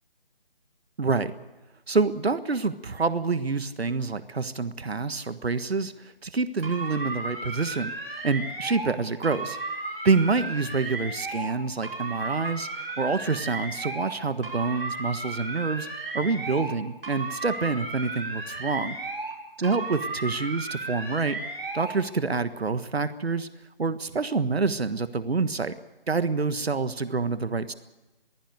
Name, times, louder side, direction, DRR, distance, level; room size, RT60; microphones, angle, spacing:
voice 1, 1.0-1.3 1.9-7.9 8.2-9.6 10.0-15.9 16.1-18.9 19.6-21.4 21.7-23.5 23.8-25.7 26.1-27.7, right 4 dB, 85° right, 11 dB, 1.5 m, -27 dB
sound 1, 6.6-8.9 9.2-11.5 11.8-14.1 14.4-16.8 17.0-19.4 19.6-22.0, right 3 dB, 65° right, 6.2 m, -34 dB
22.0 x 15.5 x 8.1 m, 1.1 s
figure-of-eight pair, 170°, 30 cm